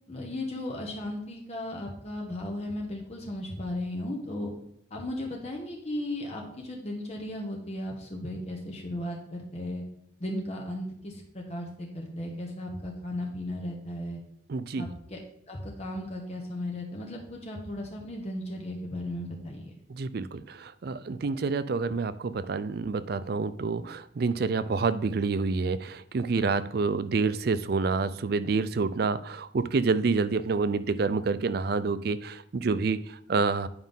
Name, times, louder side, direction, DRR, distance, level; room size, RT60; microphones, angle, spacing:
voice 1, 0.1-4.5 4.9-9.8 10.2-14.2 14.8-15.2 15.5-19.7, left 1 dB, 35° left, -1 dB, 1.0 m, -36 dB
voice 2, 14.5-14.8 19.9-33.7, right 4 dB, 50° right, 15 dB, 0.4 m, -28 dB
9.5 x 5.5 x 3.6 m, 0.76 s
head